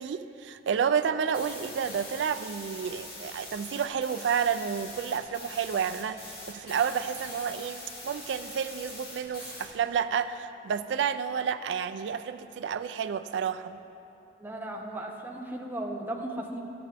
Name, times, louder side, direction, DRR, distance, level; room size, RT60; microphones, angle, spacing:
voice 1, 0.0-13.8, right 7 dB, 80° right, 10 dB, 0.3 m, -30 dB
sound 1, 1.3-9.7, left 1 dB, 60° left, 2.1 m, -43 dB
voice 2, 14.4-16.6, right 1 dB, 10° right, 0 dB, 0.8 m, -36 dB
13.5 x 8.8 x 3.4 m, 2.9 s
head